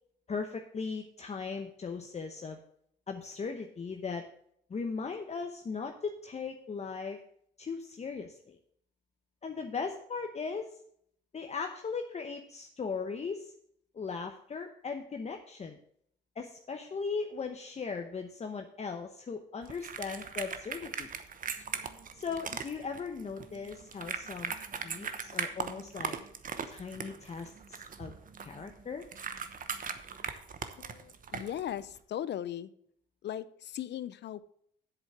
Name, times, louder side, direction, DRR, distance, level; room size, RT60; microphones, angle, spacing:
voice 1, 0.3-2.6 3.1-4.3 4.7-7.2 7.6-8.6 9.4-10.8 11.3-13.5 13.9-15.8 16.4-21.1 22.1-24.5 24.8-26.2 26.7-27.5 28.0-29.0, left 5 dB, 35° left, 5 dB, 0.9 m, -38 dB
sound 1, 19.6-32.0, right 6 dB, 45° right, 1.0 m, -40 dB
voice 2, 30.8-32.7 33.2-34.5, left 11 dB, 60° left, 16 dB, 0.6 m, -38 dB
8.2 x 7.1 x 6.0 m, 0.67 s
cardioid pair, 90°, 20 cm